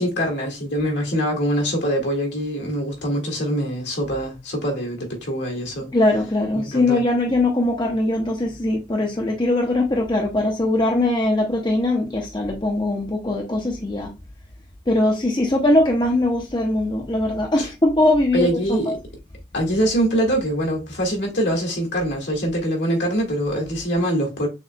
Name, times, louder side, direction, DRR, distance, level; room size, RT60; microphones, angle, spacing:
voice 1, 0.0-5.9 6.5-7.0 17.6-17.7 18.3-19.0 19.5-24.5, equal, 70° left, 1.8 m, -23 dB
voice 2, 5.9-14.1 14.9-18.6 18.9-19.0, left 1 dB, 25° left, 0.6 m, -21 dB
6.4 x 3.1 x 2.2 m
head